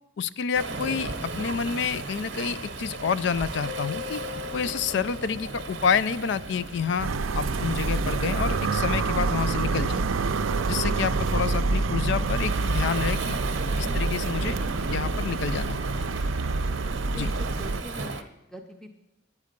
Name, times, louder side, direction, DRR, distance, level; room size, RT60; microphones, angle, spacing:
voice 1, 0.2-4.3 4.5-10.1 10.7-13.4 13.8-14.6 14.9-15.8 17.1-17.3, left 6 dB, 55° left, 17 dB, 0.3 m, -28 dB
Waves surf, 0.5-18.2, right 3 dB, 60° right, 0.8 m, -36 dB
Keyboard (musical), 3.7-6.4, left 14 dB, 85° left, 2.6 m, -40 dB
sound 1, 7.0-17.8, right 3 dB, 80° right, 0.5 m, -27 dB
voice 2, 17.0-18.9, right 1 dB, 5° left, 4 dB, 0.6 m, -43 dB
9.4 x 8.4 x 5.1 m, 0.93 s
head